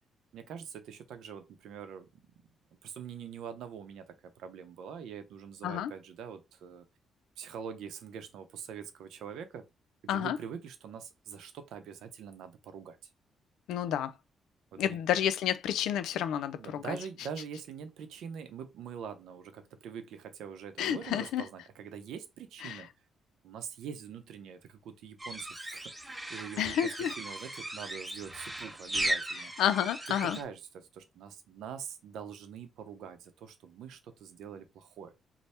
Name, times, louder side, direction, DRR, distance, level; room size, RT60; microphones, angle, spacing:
voice 1, 0.3-2.1 2.8-6.8 7.4-9.7 10.0-13.0 14.7-15.0 16.6-22.9 23.4-29.5 30.2-35.1, right 7 dB, 80° right, 0.7 m, -44 dB
voice 2, 13.7-14.1 14.8-17.0 20.8-21.4 22.6-22.8 26.6-27.1 29.6-30.4, left 10 dB, 85° left, 0.5 m, -30 dB
sound 1, 25.2-30.4, right 1 dB, 10° right, 0.8 m, -37 dB
3.3 x 2.2 x 4.2 m
cardioid pair, 90°, 0 cm